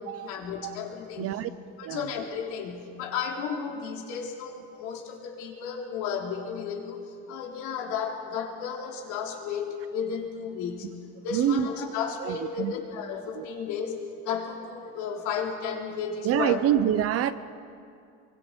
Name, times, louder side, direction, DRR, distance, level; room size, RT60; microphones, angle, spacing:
voice 1, 0.2-1.4 1.8-7.0 7.3-10.9 11.2-16.6, left 6 dB, 90° left, 0 dB, 3.2 m, -33 dB
voice 2, 1.2-1.5 1.8-2.1 11.3-11.7 12.2-12.7 13.3-13.4 16.2-17.3, right 10 dB, 50° right, 13 dB, 0.9 m, -26 dB
25.0 x 23.5 x 4.6 m, 2.4 s
cardioid pair, 140°, 30 cm